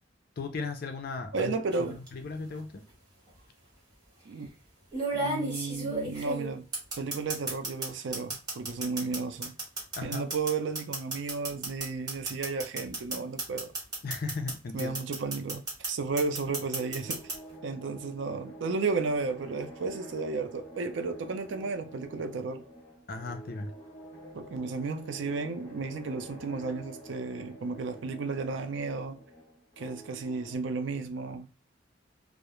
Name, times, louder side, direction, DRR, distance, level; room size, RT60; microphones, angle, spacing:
voice 1, 0.4-1.5 1.9-2.8 9.9-10.3 14.0-14.9 23.1-23.7, left 3 dB, 50° left, 0.5 m, -36 dB
voice 2, 1.3-2.0 4.3-4.5 5.1-6.7 7.0-9.6 10.0-13.7 14.7-15.6 15.9-17.2 17.6-22.6 24.3-29.2 29.8-31.5, right 4 dB, 70° right, 0.4 m, -33 dB
sound 1, 1.7-2.1 3.3-3.4 4.9-7.9 8.1-14.5 14.8-15.9 16.2-17.3, right 2 dB, 20° right, 1.1 m, -33 dB
sound 2, 16.7-30.6, right 1 dB, 15° left, 1.1 m, -48 dB
2.3 x 2.0 x 3.0 m
head